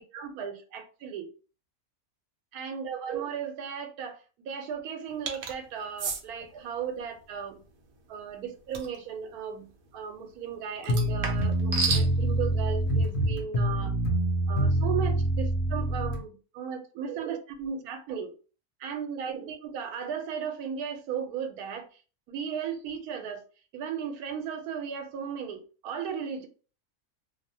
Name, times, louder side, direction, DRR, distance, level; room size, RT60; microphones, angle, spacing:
voice 1, 0.0-1.3 2.5-7.6 8.1-14.0 14.5-18.3 18.8-22.0 22.3-23.4 23.7-26.5, right 7 dB, 85° right, 1.1 m, -36 dB
sound 1, 5.3-5.5 6.0-6.2 8.7-9.0 10.8-12.1, right 5 dB, 65° right, 0.7 m, -30 dB
sound 2, 10.9-16.2, right 1 dB, 70° left, 0.9 m, -26 dB
2.6 x 2.0 x 2.6 m
omnidirectional pair, 1.5 m